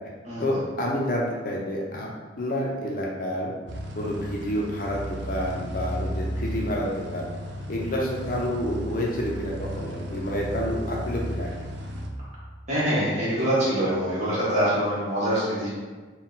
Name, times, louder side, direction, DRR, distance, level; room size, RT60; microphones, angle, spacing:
voice 1, 0.4-2.1 2.4-3.5 4.0-7.3 7.7-11.5, equal, 45° left, -2 dB, 0.6 m, -29 dB
sound 1, 3.7-12.1, equal, 75° right, 0.5 m, -34 dB
voice 2, 12.7-15.7, right 1 dB, 35° right, -9 dB, 1.5 m, -24 dB
4.1 x 2.3 x 3.9 m, 1.4 s
head